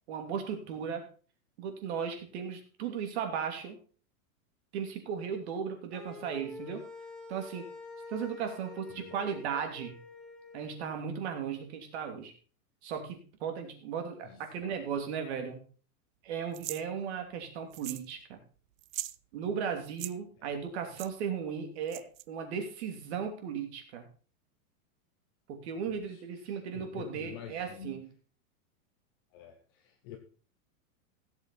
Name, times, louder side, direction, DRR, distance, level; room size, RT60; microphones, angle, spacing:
voice 1, 0.1-1.0 1.6-3.8 4.7-6.8 7.3-7.6 8.1-10.0 10.5-12.3 12.8-15.6 16.2-18.4 19.3-24.0 25.5-28.1, right 7 dB, 50° right, 5 dB, 3.0 m, -36 dB
sound 1, 5.9-10.8, left 2 dB, ahead, 1.1 m, -47 dB
voice 2, 14.2-14.8 20.4-20.5 20.9-21.0 25.9-28.0 29.3-30.2, left 8 dB, 20° left, 5 dB, 0.5 m, -48 dB
sound 2, 16.5-16.8 17.7-18.1 18.4-18.5 18.8-19.2 19.8-20.1 21.0-21.1 21.9-22.2, right 15 dB, 65° right, 0.7 m, -40 dB
16.5 x 8.1 x 4.1 m, 0.38 s
supercardioid pair, 180°, 42 cm